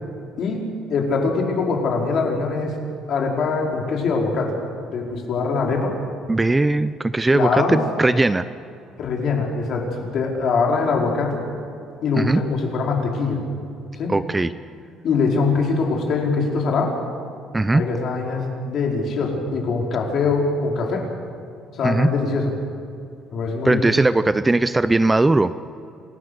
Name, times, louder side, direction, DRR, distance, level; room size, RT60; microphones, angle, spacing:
voice 1, 0.4-2.7 3.1-4.5 4.9-5.9 7.3-7.8 9.0-11.4 12.0-13.4 13.9-14.1 15.0-16.9 17.7-21.1 21.7-22.5 23.3-23.8, left 4 dB, 50° left, 0 dB, 4.7 m, -23 dB
voice 2, 6.3-8.5 12.2-12.4 14.1-14.5 17.5-17.8 21.8-22.1 23.6-25.5, right 2 dB, 15° right, 13 dB, 0.5 m, -19 dB
27.5 x 16.0 x 6.7 m, 2.6 s
cardioid pair, 125°, 0 cm